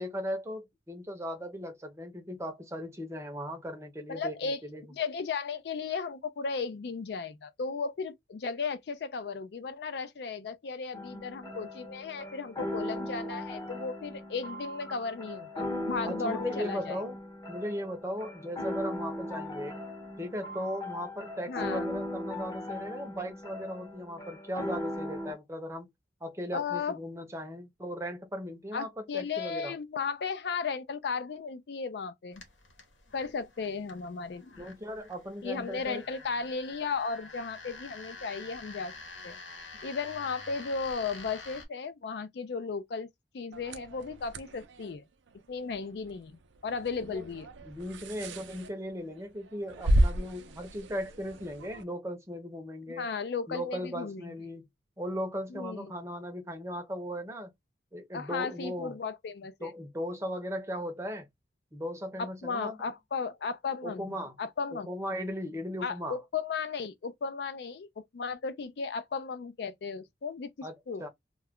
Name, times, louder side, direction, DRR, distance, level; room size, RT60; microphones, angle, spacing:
voice 1, 0.0-4.9 16.0-17.2 17.5-19.8 20.2-25.9 26.2-29.8 34.6-36.0 47.0-47.2 47.6-53.1 53.5-54.7 55.0-57.5 57.9-59.0 59.6-61.3 61.7-62.9 63.8-64.3 64.7-66.2 70.6-70.7 71.0-71.1, equal, 15° right, 0.6 m, -37 dB
voice 2, 4.1-4.6 4.9-17.0 21.5-21.8 26.5-27.0 28.7-32.4 33.1-34.7 35.4-38.9 39.2-39.4 39.8-43.1 43.3-45.0 45.5-47.5 53.0-54.3 55.5-55.9 58.1-59.7 62.2-64.9 65.8-71.0, left 5 dB, 60° left, 0.4 m, -35 dB
sound 1, 10.9-25.3, left 1 dB, 20° left, 0.7 m, -38 dB
sound 2, 32.3-41.7, left 3 dB, 85° left, 1.0 m, -48 dB
sound 3, 43.5-51.8, right 1 dB, 85° right, 0.5 m, -33 dB
2.3 x 2.2 x 3.5 m
head